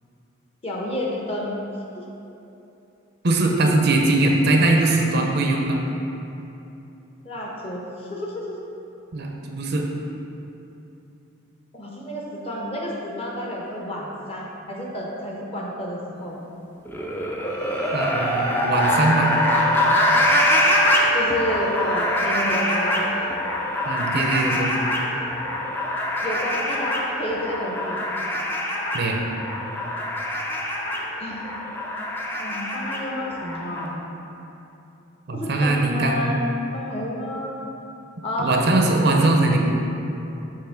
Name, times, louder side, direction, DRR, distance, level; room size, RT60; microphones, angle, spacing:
voice 1, 0.6-1.5 2.0-2.1 7.2-8.5 11.7-16.4 21.1-23.1 26.2-28.1 31.2-31.4 32.4-34.0 35.3-36.4 36.7-37.6 38.2-38.5, left 1 dB, 25° left, -3 dB, 0.8 m, -30 dB
voice 2, 3.2-5.8 9.1-9.8 17.9-19.3 23.9-24.8 28.9-29.2 35.3-36.3 38.4-39.6, right 2 dB, 50° right, 1 dB, 0.6 m, -21 dB
sound 1, 16.8-33.9, left 1 dB, 10° left, 0.4 m, -24 dB
sound 2, 17.5-23.5, right 8 dB, 90° right, 0.6 m, -33 dB
6.8 x 3.0 x 5.7 m, 2.9 s
head